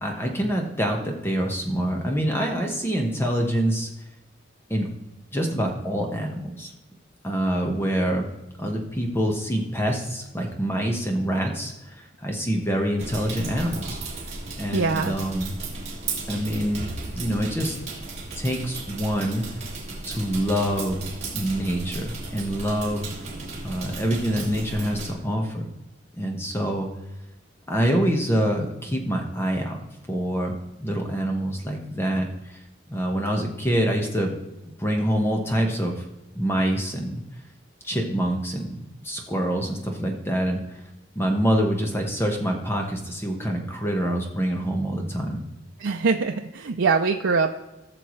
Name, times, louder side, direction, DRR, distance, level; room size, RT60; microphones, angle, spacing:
voice 1, 0.0-3.9 4.7-4.9 5.3-6.7 7.2-8.3 8.6-14.0 14.6-15.6 16.3-16.9 17.1-17.7 18.4-19.4 20.0-21.0 21.3-23.1 23.6-25.7 26.1-26.9 27.7-29.8 30.1-30.5 30.8-32.6 32.9-34.3 34.8-36.0 36.3-37.2 37.8-40.8 41.1-45.4, equal, 15° left, 1 dB, 1.3 m, -26 dB
sound 1, 13.0-25.1, right 3 dB, 35° right, 2.5 m, -35 dB
voice 2, 14.7-15.1 45.8-47.5, right 4 dB, 85° right, 4 dB, 0.5 m, -23 dB
18.0 x 6.8 x 3.2 m, 0.97 s
head